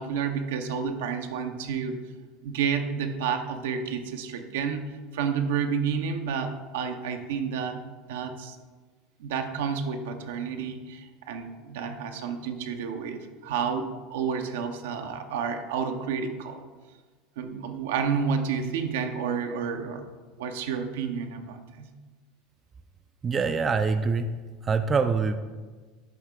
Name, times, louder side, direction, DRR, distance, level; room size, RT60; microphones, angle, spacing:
voice 1, 0.0-2.0 2.4-7.8 8.1-8.6 9.2-16.7 17.4-20.0 20.4-21.9, right 6 dB, 75° right, 5 dB, 0.6 m, -30 dB
voice 2, 23.2-24.3 24.6-25.4, right 4 dB, 30° right, 8 dB, 0.4 m, -24 dB
10.5 x 3.6 x 3.4 m, 1.4 s
hypercardioid pair, 80°, 0 cm